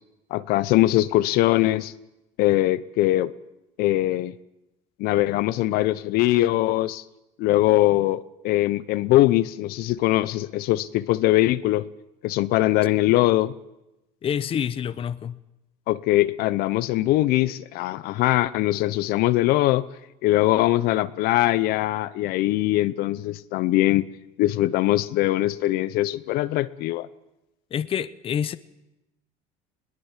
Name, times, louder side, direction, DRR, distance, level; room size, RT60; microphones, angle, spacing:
voice 1, 0.3-1.9 2.4-3.3 3.8-4.3 5.0-7.0 7.4-11.8 12.2-13.5 15.9-19.9 20.2-24.1 24.4-27.1, left 16 dB, 65° left, 0.8 m, -21 dB
voice 2, 14.2-15.4 27.7-28.6, left 8 dB, 35° left, 0.8 m, -27 dB
21.5 x 18.0 x 7.4 m
supercardioid pair, 110°, 17 cm